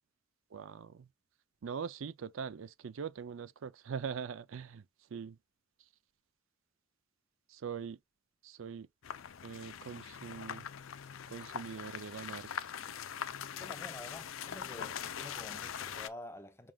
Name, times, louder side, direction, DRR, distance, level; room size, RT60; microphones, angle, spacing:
voice 1, 0.5-1.1 1.6-4.8 5.1-5.4 7.5-8.0 8.4-8.9 9.4-10.7 11.3-12.7, right 6 dB, 75° right, 0.4 m, -42 dB
sound 1, 9.0-16.1, left 8 dB, 75° left, 0.5 m, -42 dB
voice 2, 13.6-16.7, left 1 dB, 15° left, 0.6 m, -49 dB
6.1 x 3.6 x 2.3 m
head